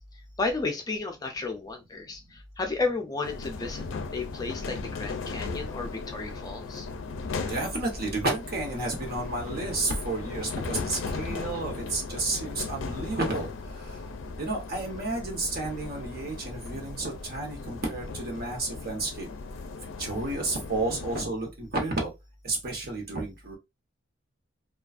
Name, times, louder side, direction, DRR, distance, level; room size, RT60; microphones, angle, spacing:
voice 1, 0.4-3.8 4.1-6.9, left 3 dB, 20° left, 0.4 m, -33 dB
sound 1, 3.2-21.2, left 4 dB, 80° left, 0.4 m, -37 dB
voice 2, 7.5-13.5 14.4-19.3 20.0-22.1 22.4-23.6, right 2 dB, 55° right, 1.0 m, -31 dB
2.4 x 2.3 x 2.4 m
head